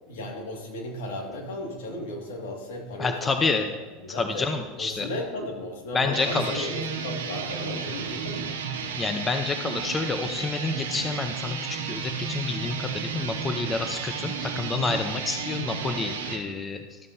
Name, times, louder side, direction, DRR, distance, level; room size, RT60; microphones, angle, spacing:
voice 1, 0.0-3.4 4.0-4.5 4.8-8.6, left 1 dB, 80° left, 1 dB, 2.1 m, -35 dB
voice 2, 3.0-3.7 4.1-5.1 5.9-6.7 9.0-17.0, left 4 dB, 20° left, 6 dB, 0.8 m, -28 dB
sound 1, 6.0-16.4, right 6 dB, 90° right, 1.1 m, -33 dB
13.5 x 7.4 x 2.8 m, 1.2 s
hypercardioid pair, 100°, 0 cm